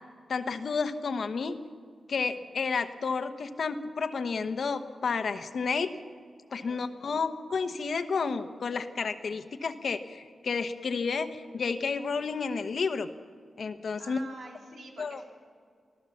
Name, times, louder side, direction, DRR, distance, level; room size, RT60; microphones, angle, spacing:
voice 1, 0.3-1.6 2.1-5.9 6.5-13.1 13.6-14.2 15.0-15.2, left 5 dB, 55° left, 10 dB, 1.0 m, -31 dB
voice 2, 14.0-15.3, right 3 dB, 65° right, 0 dB, 3.8 m, -48 dB
24.0 x 15.0 x 7.2 m, 2.1 s
wide cardioid pair, 170°, 0 cm